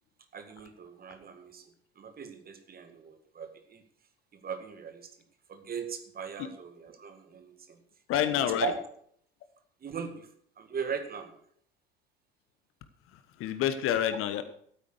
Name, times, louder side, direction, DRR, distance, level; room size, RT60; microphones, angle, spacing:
voice 1, 0.3-3.8 4.3-5.2 5.5-7.8 8.4-8.8 9.8-10.3 10.6-11.4, right 6 dB, 30° right, 8 dB, 1.9 m, -39 dB
voice 2, 8.1-8.7 13.4-14.4, left 10 dB, 45° left, 11 dB, 1.3 m, -27 dB
12.5 x 9.1 x 6.5 m, 0.62 s
figure-of-eight pair, 65°, 29 cm